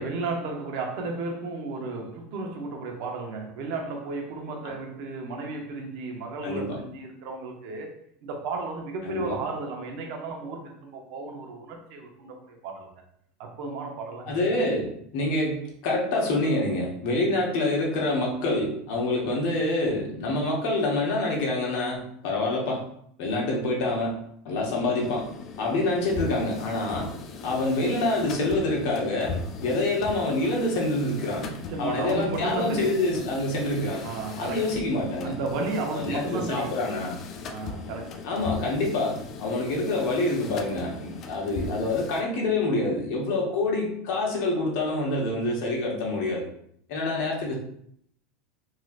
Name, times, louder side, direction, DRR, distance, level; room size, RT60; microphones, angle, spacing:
voice 1, 0.0-12.9 13.4-14.5 31.7-33.1 34.0-34.7 35.2-36.8 37.5-38.3, right 3 dB, 65° right, 0.7 m, -33 dB
voice 2, 6.4-6.8 9.0-9.4 14.3-22.8 23.2-24.2 24.4-25.3 25.6-27.1 27.4-34.1 34.4-35.3 35.9-37.2 38.2-46.4 46.9-47.5, left 2 dB, 65° left, 1.0 m, -26 dB
sound 1, 25.0-42.2, left 4 dB, 45° left, 0.4 m, -39 dB
3.1 x 2.8 x 2.4 m
supercardioid pair, 125°, 0 cm